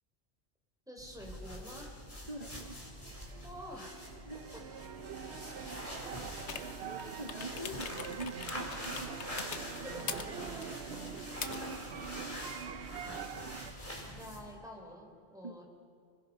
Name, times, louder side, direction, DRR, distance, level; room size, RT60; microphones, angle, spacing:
voice 1, 0.9-1.9 3.4-4.2 5.5-6.3 6.7-6.9 9.5-10.9 13.0-13.3 14.0-15.6, equal, 5° right, 0 dB, 4.5 m, -49 dB
sound 1, 1.0-14.5, equal, 30° left, 4.3 m, -45 dB
voice 2, 2.3-2.9 4.2-4.4 6.9-9.1 11.7-11.8 15.4-15.6, right 2 dB, 35° right, 0 dB, 1.7 m, -44 dB
sound 2, 2.3-13.7, right 7 dB, 70° right, 1.0 m, -45 dB
sound 3, 6.4-12.3, left 7 dB, 90° left, 1.2 m, -45 dB
29.5 x 20.5 x 5.6 m, 2.3 s
omnidirectional pair, 1.1 m